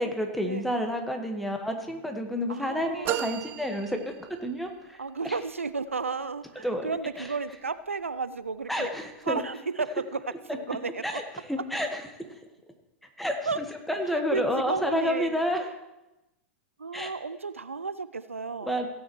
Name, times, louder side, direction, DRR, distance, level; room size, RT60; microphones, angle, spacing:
voice 1, 0.0-5.0 6.6-6.9 7.2-7.3 8.7-9.4 11.0-11.2 11.5-12.0 13.2-13.4 13.9-15.6 16.9-17.1 18.6-18.9, equal, ahead, 4 dB, 1.6 m, -29 dB
voice 2, 2.5-3.4 5.0-8.9 9.2-10.2 10.5-11.2 13.5-13.6 14.0-15.4 16.8-18.8, right 4 dB, 85° right, 14 dB, 0.4 m, -33 dB
sound 1, 3.0-4.7, right 12 dB, 35° right, 0.5 m, -34 dB
16.5 x 9.1 x 3.2 m, 0.94 s
figure-of-eight pair, 95°, 7 cm